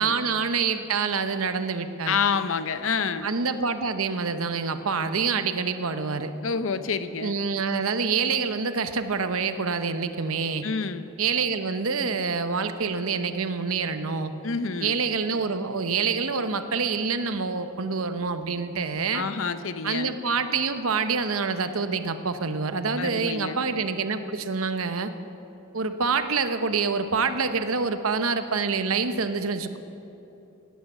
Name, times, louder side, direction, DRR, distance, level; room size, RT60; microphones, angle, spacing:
voice 1, 0.0-2.2 3.2-6.3 7.2-10.6 11.2-14.3 14.8-19.2 19.8-25.1 25.7-29.8, right 5 dB, 85° right, 9 dB, 0.9 m, -26 dB
voice 2, 2.1-3.3 6.4-7.3 10.6-11.0 14.4-15.0 19.1-20.1 23.0-23.6, left 5 dB, 70° left, 12 dB, 0.7 m, -28 dB
18.5 x 9.4 x 7.4 m, 3.0 s
head